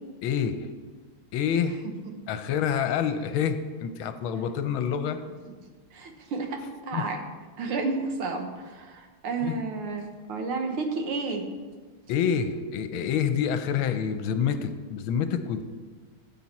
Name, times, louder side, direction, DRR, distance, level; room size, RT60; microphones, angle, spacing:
voice 1, 0.2-0.7 1.3-1.8 2.3-5.2 6.9-7.0 9.4-9.6 12.1-15.6, left 7 dB, 80° left, 10 dB, 1.5 m, -27 dB
voice 2, 5.9-7.2 7.6-11.5, right 3 dB, 90° right, 5 dB, 2.0 m, -31 dB
13.5 x 7.5 x 4.2 m, 1.5 s
omnidirectional pair, 2.3 m